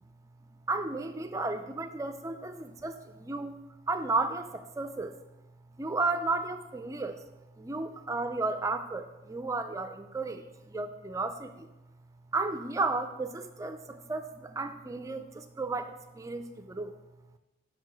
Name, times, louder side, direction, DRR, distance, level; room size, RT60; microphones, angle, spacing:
voice 1, 0.7-5.2 5.8-7.3 7.6-11.7 12.3-16.9, right 3 dB, 15° right, 8 dB, 0.4 m, -33 dB
5.4 x 4.6 x 6.0 m, 1.0 s
head